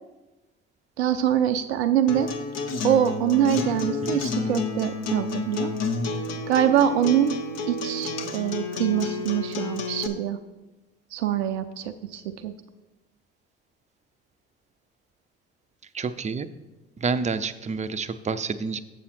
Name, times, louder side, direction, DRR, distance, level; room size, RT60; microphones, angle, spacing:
voice 1, 1.0-2.3 2.8-5.7 6.5-7.4 7.7-10.4 11.1-12.5, right 10 dB, 85° right, 9 dB, 0.5 m, -24 dB
Acoustic guitar, 2.1-10.1, left 3 dB, 55° left, 1.0 m, -30 dB
voice 2, 15.9-16.5 17.0-18.8, right 4 dB, 20° right, 11 dB, 0.5 m, -28 dB
7.7 x 7.1 x 4.3 m, 1.1 s
hypercardioid pair, 60°, 32 cm